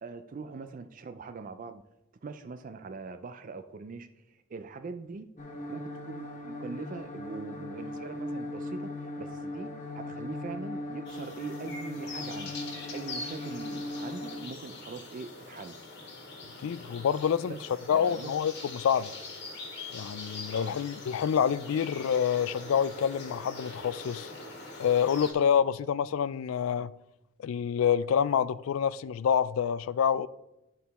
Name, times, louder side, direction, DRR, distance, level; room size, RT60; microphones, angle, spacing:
voice 1, 0.0-1.8 2.2-5.3 5.7-9.7 9.9-12.5 12.9-15.8 17.5-18.3 20.5-20.8, right 4 dB, 40° right, 0.4 m, -42 dB
sound 1, 5.4-14.4, left 1 dB, 35° left, 1.0 m, -39 dB
sound 2, 11.1-25.3, left 3 dB, 50° left, 1.6 m, -43 dB
voice 2, 16.6-17.5 17.9-19.1 19.9-24.3 24.8-26.9 27.4-30.3, left 8 dB, 70° left, 0.3 m, -27 dB
11.5 x 3.9 x 4.1 m
head